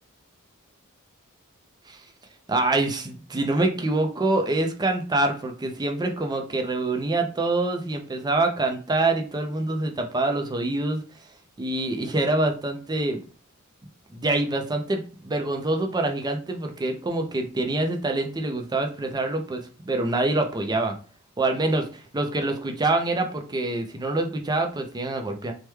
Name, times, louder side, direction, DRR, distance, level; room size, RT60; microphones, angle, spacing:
voice 1, 2.5-11.0 11.6-13.2 14.1-20.9 21.4-25.5, right 2 dB, 20° right, 4 dB, 0.5 m, -25 dB
3.1 x 2.2 x 3.3 m, 0.38 s
head